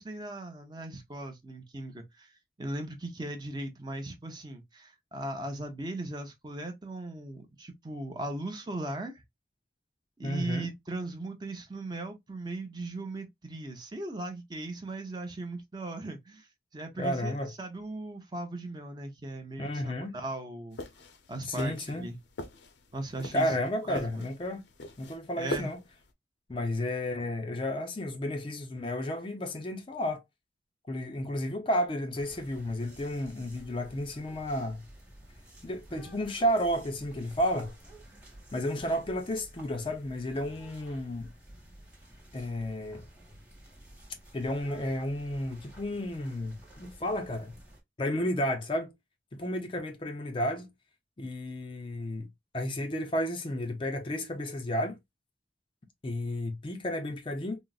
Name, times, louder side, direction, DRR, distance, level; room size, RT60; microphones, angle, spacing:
voice 1, 0.0-2.3 2.6-9.2 10.2-16.5 16.7-20.8 21.3-22.2 22.9-23.6 23.9-24.3 25.4-25.7, right 2 dB, 25° right, 0.6 m, -38 dB
voice 2, 10.2-10.7 17.0-17.5 19.6-20.1 21.4-22.1 23.3-24.6 25.0-25.8 26.5-30.2 30.9-34.8 35.6-37.7 38.5-41.3 42.3-43.0 44.3-47.5 48.0-48.9 49.3-50.7 51.2-52.3 52.5-55.0 56.0-57.6, equal, 30° left, 0.4 m, -32 dB
sound 1, 20.7-26.1, left 1 dB, 80° left, 0.6 m, -42 dB
sound 2, 32.1-47.8, right 1 dB, 10° right, 1.1 m, -52 dB
3.8 x 2.0 x 2.3 m
head